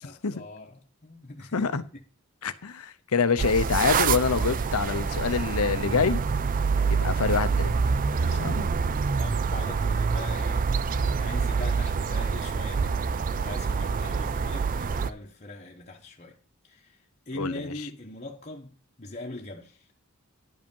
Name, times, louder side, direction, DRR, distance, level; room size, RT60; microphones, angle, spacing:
voice 1, 0.0-2.0 8.2-8.7 9.2-10.7 11.1-19.9, left 2 dB, 30° left, 1.1 m, -42 dB
voice 2, 1.5-1.8 2.4-6.2 6.9-7.7 8.3-8.7 17.4-17.6, left 5 dB, 75° left, 0.7 m, -26 dB
sound 1, 3.4-15.1, right 5 dB, 40° right, 0.4 m, -26 dB
11.0 x 5.2 x 5.4 m
head